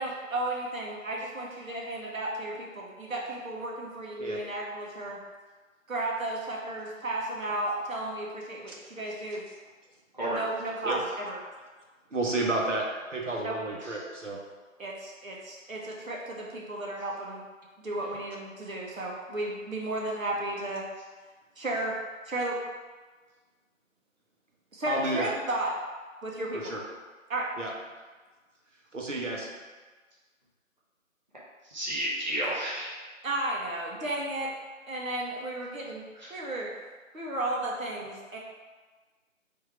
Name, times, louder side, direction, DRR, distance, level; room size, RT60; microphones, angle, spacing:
voice 1, 0.0-5.2 5.9-9.4 10.3-11.4 13.4-13.5 14.8-17.4 17.8-20.8 21.6-22.0 22.2-22.6 24.7-25.7 26.2-26.7 27.3-27.4 33.2-34.5 34.9-36.0 36.3-36.7 37.1-38.4, right 2 dB, 85° right, -3 dB, 1.2 m, -33 dB
voice 2, 12.1-14.4 24.9-25.3 26.5-26.8 27.6-27.7 28.9-29.5, right 2 dB, 65° right, -1 dB, 1.0 m, -31 dB
voice 3, 31.6-33.0 36.1-36.3, right 1 dB, 35° right, -8 dB, 0.7 m, -32 dB
3.5 x 2.7 x 4.4 m, 1.4 s
figure-of-eight pair, 170°, 40 cm